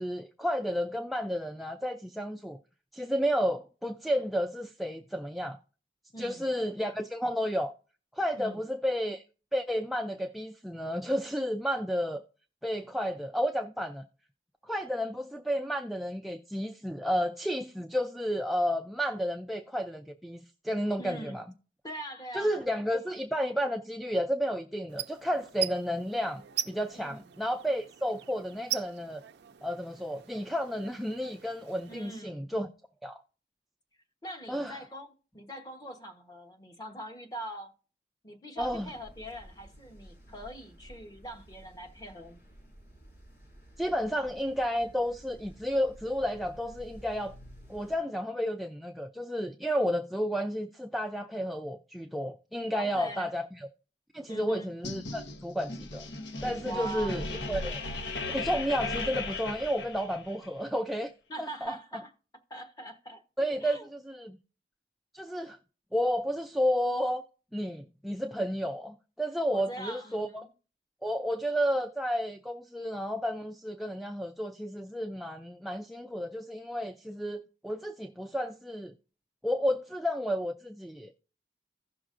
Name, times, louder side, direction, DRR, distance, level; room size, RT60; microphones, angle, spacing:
voice 1, 0.0-2.6 2.9-5.6 6.2-7.7 8.1-9.2 9.5-12.2 12.6-14.0 14.6-21.5 22.3-29.2 29.6-32.7 33.0-33.2 34.5-34.8 38.6-38.9 43.8-47.4 47.7-53.7 54.1-56.1 56.4-57.8 58.3-61.1 61.4-62.0 63.4-64.4 65.1-65.6 65.9-67.2 67.5-70.5 71.0-78.9 79.4-81.1, equal, ahead, 0.3 m, -32 dB
voice 2, 6.1-6.5 8.4-8.6 21.0-21.4 21.8-22.6 26.9-27.3 31.9-32.5 34.2-35.1 35.3-37.7 38.2-42.4 52.7-53.3 54.3-54.7 56.6-57.3 61.3-62.1 62.5-63.2 63.6-63.9 69.5-70.5, right 1 dB, 20° left, 1.1 m, -42 dB
sound 1, 24.9-32.2, right 12 dB, 80° right, 0.4 m, -41 dB
sound 2, 38.6-48.0, equal, 60° left, 5.0 m, -53 dB
sound 3, 54.8-60.5, left 3 dB, 90° left, 0.9 m, -37 dB
16.0 x 6.0 x 2.5 m
head